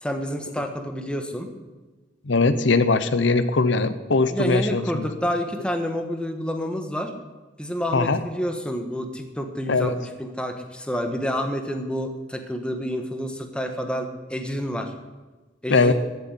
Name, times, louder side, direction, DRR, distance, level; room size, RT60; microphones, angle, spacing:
voice 1, 0.0-1.5 4.3-7.1 7.6-14.9 15.6-15.9, equal, 5° left, 5 dB, 1.5 m, -29 dB
voice 2, 2.3-5.1 7.9-8.2 9.7-10.0 15.7-15.9, left 3 dB, 75° left, 12 dB, 0.9 m, -20 dB
14.5 x 7.8 x 9.7 m, 1.2 s
head